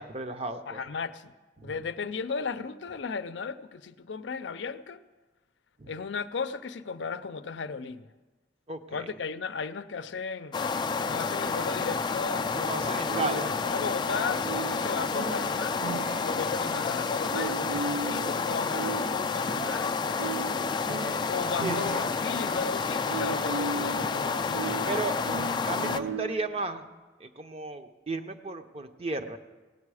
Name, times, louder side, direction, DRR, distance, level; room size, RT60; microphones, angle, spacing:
voice 1, 0.0-0.8 1.6-1.7 5.8-5.9 8.7-9.1 12.6-13.6 21.6-22.0 24.9-25.2 25.7-26.9 27.2-29.4, right 3 dB, 35° right, 8 dB, 0.7 m, -34 dB
voice 2, 0.7-1.3 1.6-5.0 5.9-8.1 8.9-10.6 11.1-15.8 16.2-20.6 21.3-25.0, left 5 dB, 85° left, 11 dB, 0.5 m, -35 dB
sound 1, 10.5-26.0, left 5 dB, 25° left, 0.3 m, -30 dB
sound 2, 13.0-26.6, right 5 dB, 80° right, 0.3 m, -38 dB
17.5 x 8.4 x 4.8 m, 1.3 s
head